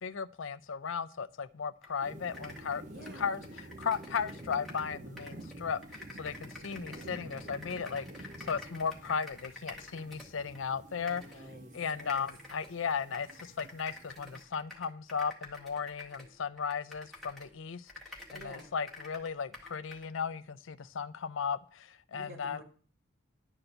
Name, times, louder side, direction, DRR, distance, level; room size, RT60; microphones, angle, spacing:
voice 1, 0.0-2.9 3.1-3.4 3.8-11.2 11.7-22.6, left 6 dB, 90° left, 0.5 m, -36 dB
sound 1, 1.8-1.9 2.2-4.9 5.2-10.6 11.1-11.4 11.9-17.6 17.9-20.1, left 2 dB, ahead, 1.7 m, -49 dB
sound 2, 2.0-14.4, right 1 dB, 40° right, 0.7 m, -49 dB
voice 2, 2.9-3.4 10.9-12.3 18.3-18.7 22.1-22.6, equal, 85° right, 3.0 m, -50 dB
11.0 x 4.3 x 7.8 m
head